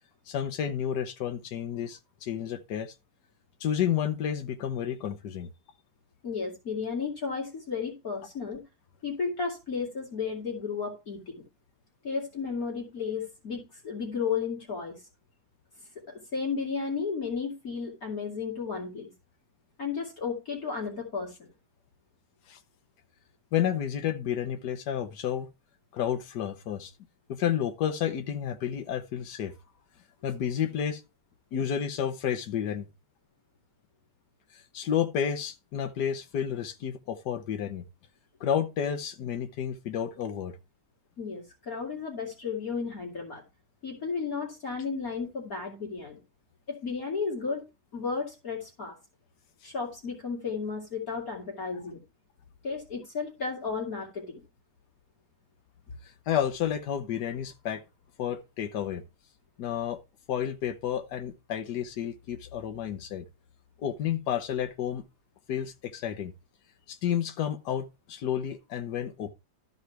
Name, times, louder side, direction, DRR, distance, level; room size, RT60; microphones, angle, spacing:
voice 1, 0.3-2.9 3.6-5.5 22.5-22.6 23.5-25.5 25.9-26.9 27.3-29.5 30.2-31.0 31.5-32.9 34.7-37.8 38.4-40.5 56.3-57.8 58.2-59.0 59.6-60.0 60.3-63.2 63.8-65.0 65.5-66.3 66.9-69.3, left 9 dB, 70° left, 1.6 m, -31 dB
voice 2, 6.2-8.6 9.0-11.4 12.0-15.0 16.1-19.1 19.8-21.5 41.2-43.4 43.8-46.2 46.7-47.6 47.9-49.0 49.6-52.0 52.6-54.4, left 5 dB, 50° left, 2.9 m, -33 dB
13.0 x 4.9 x 4.5 m
omnidirectional pair, 1.9 m